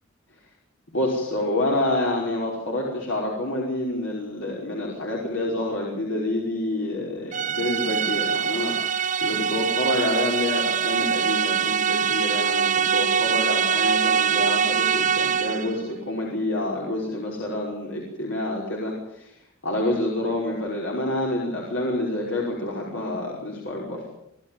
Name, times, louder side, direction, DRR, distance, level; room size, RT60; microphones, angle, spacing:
voice 1, 0.9-19.3 19.6-24.1, left 1 dB, 65° left, -2 dB, 5.3 m, -28 dB
sound 1, 7.3-15.8, right 7 dB, 35° right, 0.7 m, -23 dB
25.0 x 14.0 x 9.1 m, 0.76 s
head